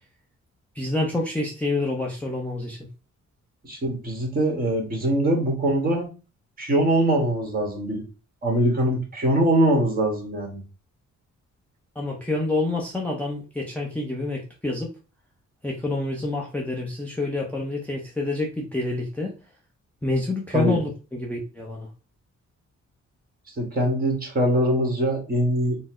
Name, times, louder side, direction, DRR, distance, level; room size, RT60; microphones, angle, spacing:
voice 1, 0.7-2.8 12.0-14.9 15.6-19.3 20.0-21.9, left 2 dB, 5° left, -2 dB, 0.6 m, -27 dB
voice 2, 3.6-6.1 6.6-8.0 8.4-10.6 20.5-20.8 23.6-25.8, right 1 dB, 30° right, 1 dB, 1.4 m, -22 dB
4.3 x 2.0 x 4.2 m, 0.33 s
wide cardioid pair, 155°, 30 cm